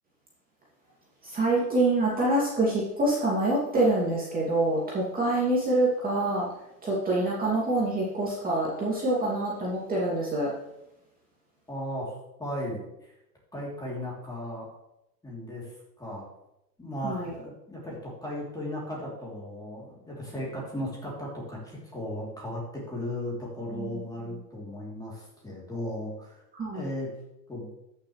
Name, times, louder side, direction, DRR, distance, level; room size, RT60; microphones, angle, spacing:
voice 1, 1.2-6.5 6.8-10.5 17.0-17.3 23.7-24.0 26.6-26.9, right 2 dB, 20° right, -6 dB, 2.6 m, -26 dB
voice 2, 11.7-13.1 13.5-14.7 15.2-16.3 16.8-26.4 26.7-27.1 27.5-27.7, left 1 dB, 10° left, -4 dB, 3.2 m, -36 dB
13.5 x 6.8 x 3.3 m, 0.86 s
hypercardioid pair, 120°, 48 cm